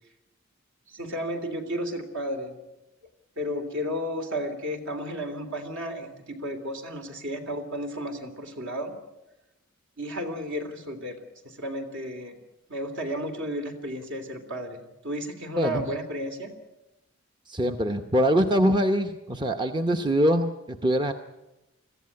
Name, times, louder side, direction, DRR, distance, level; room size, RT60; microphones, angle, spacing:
voice 1, 0.9-2.6 3.4-8.9 10.0-11.2 11.6-12.4 12.7-16.5, equal, 60° right, 4 dB, 3.2 m, -33 dB
voice 2, 15.6-15.9 17.5-21.1, equal, 20° right, 6 dB, 0.9 m, -23 dB
21.5 x 15.0 x 9.6 m, 0.98 s
head